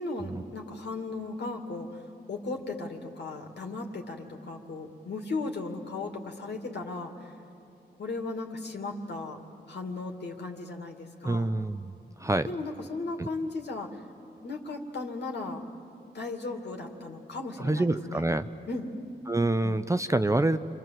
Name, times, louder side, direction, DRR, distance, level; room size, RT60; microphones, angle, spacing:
voice 1, 0.0-2.0 2.3-7.3 8.0-9.4 9.7-11.5 12.4-14.0 14.4-15.6 16.1-18.2 18.7-19.0 19.6-20.0, left 3 dB, 65° left, 2 dB, 2.5 m, -36 dB
voice 2, 11.2-12.5 13.2-13.3 17.6-18.5 19.3-20.6, right 2 dB, 15° right, 10 dB, 0.7 m, -27 dB
28.0 x 25.0 x 7.6 m, 2.7 s
cardioid pair, 60°, 19 cm